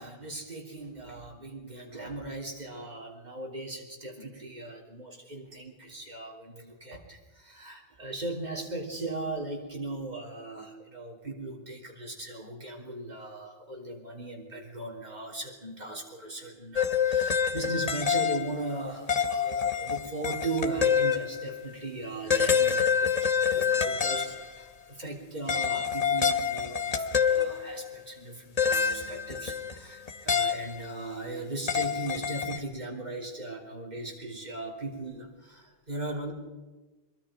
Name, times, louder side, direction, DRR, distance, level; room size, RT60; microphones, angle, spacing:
voice 1, 0.0-36.3, right 2 dB, 40° right, 0 dB, 3.5 m, -38 dB
sound 1, 16.8-18.8 19.1-21.6 22.3-24.5 25.5-27.9 28.6-29.8 30.1-31.1 31.7-32.6, left 7 dB, 40° left, 1.0 m, -27 dB
24.5 x 22.0 x 5.1 m, 1.2 s
omnidirectional pair, 1.1 m